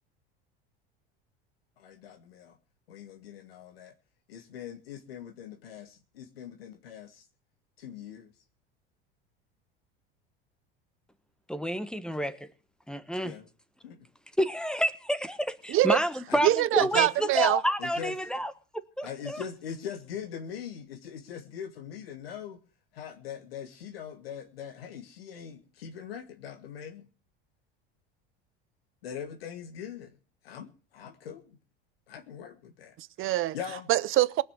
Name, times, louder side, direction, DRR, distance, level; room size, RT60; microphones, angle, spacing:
voice 1, 1.8-2.6 2.9-3.9 4.3-7.2 7.8-8.3 13.2-13.5 13.8-14.1 16.3-16.4 16.8-17.1 17.8-18.2 19.0-22.6 22.9-27.1 29.0-30.1 30.4-31.6 32.1-32.9 33.5-33.9, left 8 dB, 90° left, 1.7 m, -41 dB
voice 2, 11.5-12.5 12.9-13.3 14.4-18.5 19.0-19.4, equal, 5° left, 1.2 m, -29 dB
voice 3, 16.4-17.6 33.0-33.6 33.9-34.4, right 15 dB, 45° right, 0.7 m, -24 dB
19.0 x 6.5 x 8.1 m
hypercardioid pair, 90°, 29 cm